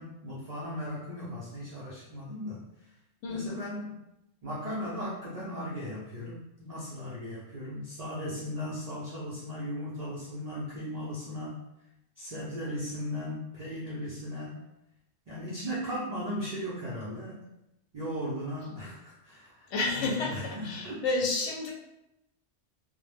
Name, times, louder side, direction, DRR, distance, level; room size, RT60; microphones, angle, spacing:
voice 1, 0.0-2.6 3.3-4.0 4.4-11.6 12.2-14.6 15.3-17.4 17.9-21.0, equal, 60° right, -7 dB, 0.4 m, -37 dB
voice 2, 3.2-3.5 19.7-20.4 20.6-21.7, left 3 dB, 70° left, -1 dB, 0.8 m, -30 dB
2.1 x 2.0 x 3.2 m, 0.88 s
omnidirectional pair, 1.3 m